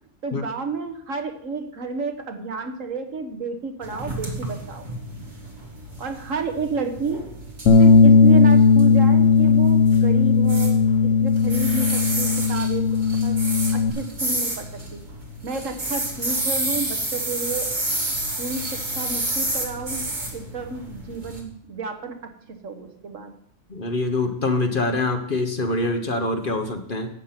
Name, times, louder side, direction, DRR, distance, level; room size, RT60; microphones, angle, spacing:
voice 1, 0.2-4.9 6.0-7.2 7.8-10.8 11.0-12.9 13.2-15.0 15.4-17.7 18.4-22.3 22.6-23.3, right 4 dB, 70° right, 5 dB, 1.7 m, -31 dB
sound 1, 3.8-21.4, right 1 dB, 35° right, 2.0 m, -30 dB
Bass guitar, 7.7-13.9, left 5 dB, 65° left, 1.4 m, -16 dB
voice 2, 23.7-27.1, left 2 dB, 40° left, 5 dB, 1.2 m, -24 dB
11.5 x 8.3 x 5.9 m, 0.67 s
omnidirectional pair, 1.4 m